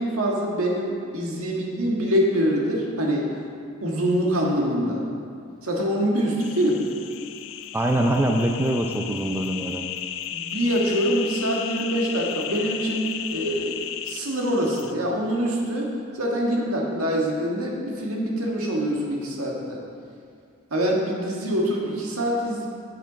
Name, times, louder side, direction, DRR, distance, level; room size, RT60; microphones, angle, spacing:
voice 1, 0.0-3.3 3.8-5.0 5.6-6.8 10.3-13.8 14.0-19.8 20.7-22.7, equal, 80° right, -2 dB, 1.7 m, -25 dB
sound 1, 6.4-14.9, left 10 dB, 65° left, 0.4 m, -34 dB
voice 2, 7.7-9.9, right 1 dB, 10° right, 2 dB, 0.4 m, -23 dB
8.6 x 6.7 x 5.1 m, 2.3 s
head